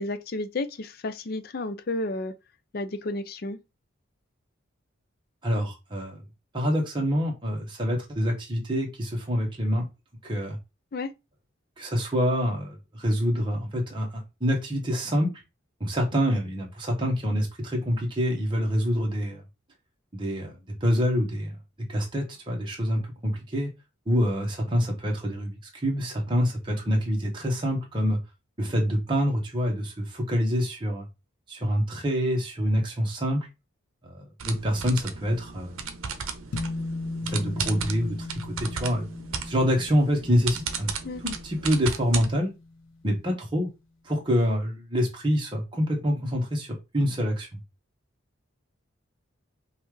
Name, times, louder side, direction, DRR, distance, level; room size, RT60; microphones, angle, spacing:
voice 1, 0.0-2.3 2.7-3.6 10.9-11.1 41.0-41.2, left 2 dB, 45° left, 0.4 m, -32 dB
voice 2, 5.4-6.2 6.5-9.9 10.2-10.6 11.8-15.3 15.8-19.4 20.1-21.6 21.9-23.7 24.1-28.2 28.6-31.1 31.5-33.4 34.0-35.7 37.3-39.1 39.4-40.9 41.2-42.5 43.0-43.7 44.0-47.6, equal, 25° right, 1.1 m, -26 dB
sound 1, 34.4-42.3, right 6 dB, 85° right, 0.7 m, -35 dB
sound 2, 36.5-43.1, left 2 dB, 90° left, 0.6 m, -38 dB
5.4 x 2.4 x 3.1 m
head